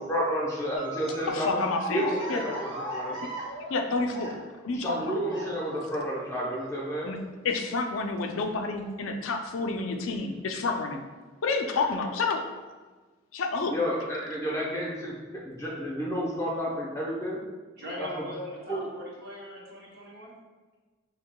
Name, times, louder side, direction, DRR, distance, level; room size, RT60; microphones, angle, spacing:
voice 1, 0.1-1.6 1.9-3.2 4.7-7.1 13.7-15.1 15.4-17.4 18.1-18.2 18.7-18.9, equal, 15° left, -5 dB, 0.8 m, -30 dB
sound 1, 0.7-4.7 5.3-5.8 6.8-7.2 7.6-7.7 9.0-9.1 9.9-10.1, right 1 dB, 20° right, 0.8 m, -38 dB
voice 2, 1.3-2.4 3.7-4.3 4.6-5.2 7.0-7.2 7.4-11.0 11.4-12.4 13.3-13.7, left 3 dB, 85° left, 4 dB, 0.4 m, -29 dB
voice 3, 4.5-4.8 7.0-7.2 17.7-20.3, equal, 50° right, -4 dB, 1.0 m, -41 dB
5.7 x 2.9 x 2.2 m, 1.3 s
head